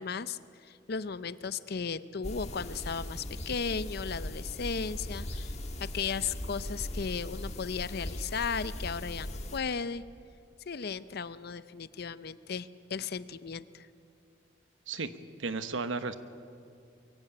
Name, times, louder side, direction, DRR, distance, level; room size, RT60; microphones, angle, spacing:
voice 1, 0.0-5.5 5.8-10.0 10.7-13.9, left 5 dB, 55° left, 15 dB, 0.6 m, -35 dB
sound 1, 2.2-9.6, left 1 dB, 35° left, 1.5 m, -39 dB
voice 2, 15.4-16.1, right 4 dB, 90° right, 11 dB, 1.0 m, -33 dB
23.0 x 15.5 x 8.6 m, 2.5 s
head